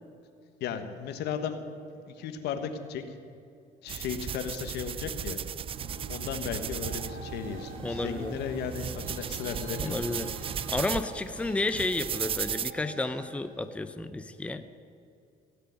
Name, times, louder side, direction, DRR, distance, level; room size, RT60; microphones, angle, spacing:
voice 1, 0.6-1.6 2.1-3.1 3.8-5.4 6.1-10.2, left 7 dB, 80° left, 8 dB, 1.3 m, -35 dB
sound 1, 3.9-12.7, right 8 dB, 35° right, 0.4 m, -36 dB
sound 2, 5.7-10.9, right 3 dB, 90° right, 1.5 m, -43 dB
Traffic noise roadway noise, 6.4-14.1, right 4 dB, 55° right, 2.5 m, -49 dB
voice 2, 7.8-8.3 9.8-10.3 10.7-14.6, left 2 dB, 5° left, 10 dB, 0.6 m, -31 dB
17.0 x 6.8 x 9.3 m, 2.5 s
cardioid pair, 110°, 17 cm